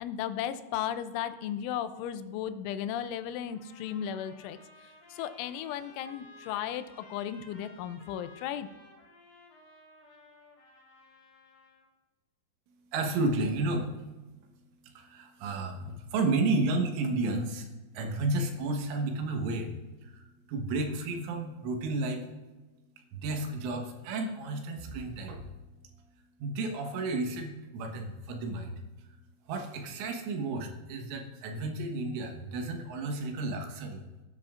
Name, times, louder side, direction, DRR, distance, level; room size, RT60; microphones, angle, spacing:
voice 1, 0.0-4.6 5.1-8.7, left 10 dB, 85° left, 11 dB, 3.0 m, -35 dB
sound 1, 3.5-11.8, left 2 dB, 55° left, 4.3 m, -56 dB
voice 2, 12.9-13.9 15.0-17.7 18.0-19.7 20.0-20.2 20.5-22.2 23.1-25.5 26.4-28.8 29.5-34.0, right 2 dB, 85° right, 3 dB, 3.8 m, -32 dB
18.0 x 10.0 x 2.5 m, 1.2 s
omnidirectional pair, 5.5 m